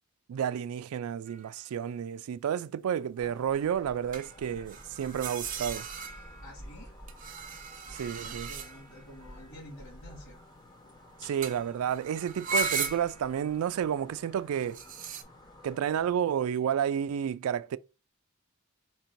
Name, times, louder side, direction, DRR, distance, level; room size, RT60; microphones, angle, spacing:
voice 1, 0.3-5.9 7.9-8.5 11.2-14.8 15.6-17.8, right 8 dB, 80° right, 0.3 m, -31 dB
sound 1, 1.3-1.5 4.1-6.5 7.1-9.0 11.4-11.6 11.9-13.3 14.5-15.2, right 4 dB, 40° right, 0.6 m, -36 dB
sound 2, 3.2-16.1, equal, 20° left, 0.9 m, -51 dB
voice 2, 6.4-7.0 7.9-10.4, left 1 dB, 75° left, 2.1 m, -50 dB
4.5 x 2.6 x 4.4 m
head